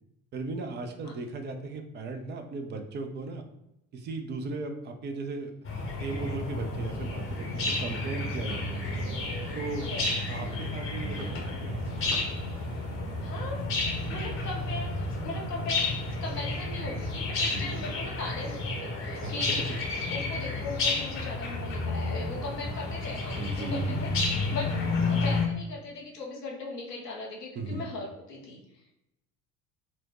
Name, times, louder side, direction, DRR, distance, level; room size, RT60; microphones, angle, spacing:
voice 1, 0.3-3.4 3.9-5.5 6.0-9.0 9.5-9.9 10.3-11.8 14.0-14.2 17.4-17.8 19.1-19.3 23.3-24.0 27.6-27.9, right 3 dB, 25° right, 5 dB, 0.4 m, -37 dB
sound 1, 5.6-25.5, left 3 dB, 30° left, 0.8 m, -31 dB
sound 2, 7.2-18.8, right 4 dB, 55° right, 0.8 m, -44 dB
voice 2, 13.2-19.6 20.1-24.7 25.0-28.8, left 3 dB, 85° left, -2 dB, 0.7 m, -39 dB
4.3 x 2.1 x 2.9 m, 0.86 s
figure-of-eight pair, 60°, 47 cm